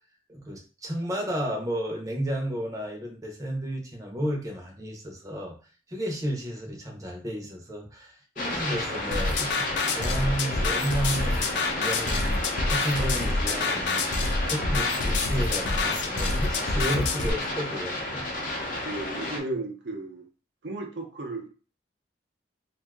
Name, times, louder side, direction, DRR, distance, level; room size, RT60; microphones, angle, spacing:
voice 1, 0.3-5.5 5.9-18.2, equal, 20° right, -1 dB, 0.6 m, -32 dB
sound 1, 8.4-19.4, left 1 dB, 50° left, 0.7 m, -32 dB
sound 2, 9.1-17.3, left 3 dB, 85° left, 0.5 m, -27 dB
voice 2, 18.8-20.2 20.6-21.5, right 2 dB, 75° right, 3 dB, 0.6 m, -34 dB
2.5 x 2.4 x 3.4 m, 0.36 s
head